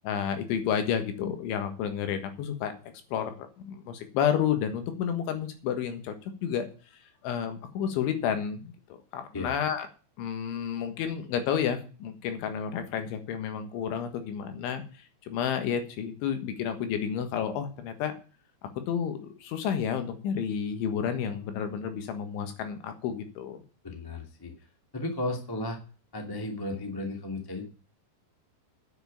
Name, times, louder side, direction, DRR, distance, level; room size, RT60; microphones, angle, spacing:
voice 1, 0.0-2.7 3.1-6.2 6.4-6.7 6.9-8.7 9.1-9.9 10.2-18.2 18.8-23.6, left 8 dB, 75° left, 7 dB, 3.9 m, -31 dB
voice 2, 23.8-24.5 24.9-25.8 26.1-27.7, left 2 dB, 15° left, 2 dB, 0.9 m, -34 dB
10.0 x 7.3 x 8.5 m, 0.36 s
omnidirectional pair, 5.5 m